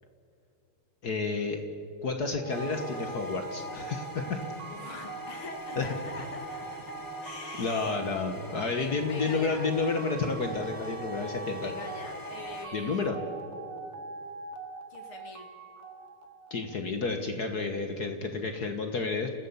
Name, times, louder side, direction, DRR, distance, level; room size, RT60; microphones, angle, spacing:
voice 1, 1.0-1.6 2.0-4.4 5.8-5.9 7.6-11.7 12.7-13.2 16.5-19.3, left 4 dB, 50° left, 5 dB, 1.7 m, -30 dB
sound 1, 2.4-16.8, right 4 dB, 85° right, 2.4 m, -42 dB
sound 2, 2.5-12.7, left 2 dB, 10° left, 1.1 m, -45 dB
voice 2, 4.7-8.0 8.8-9.7 11.6-13.1 14.9-15.5, left 4 dB, 70° left, 3 dB, 3.2 m, -44 dB
29.0 x 15.5 x 7.2 m, 2.5 s
omnidirectional pair, 2.4 m